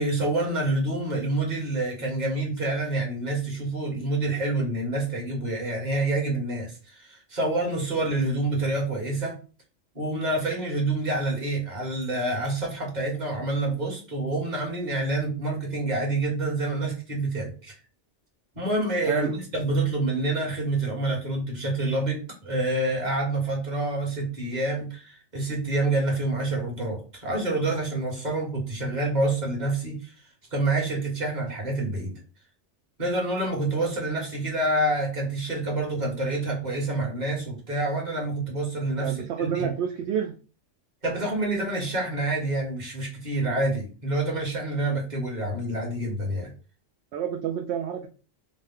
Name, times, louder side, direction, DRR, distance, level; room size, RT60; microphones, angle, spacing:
voice 1, 0.0-9.4 9.9-17.8 18.5-30.1 30.5-32.1 33.0-39.7 41.0-46.5, right 2 dB, 35° right, -1 dB, 1.5 m, -27 dB
voice 2, 39.0-40.3 47.1-48.1, right 8 dB, 70° right, 4 dB, 0.8 m, -28 dB
5.0 x 2.2 x 3.6 m, 0.35 s
omnidirectional pair, 1.3 m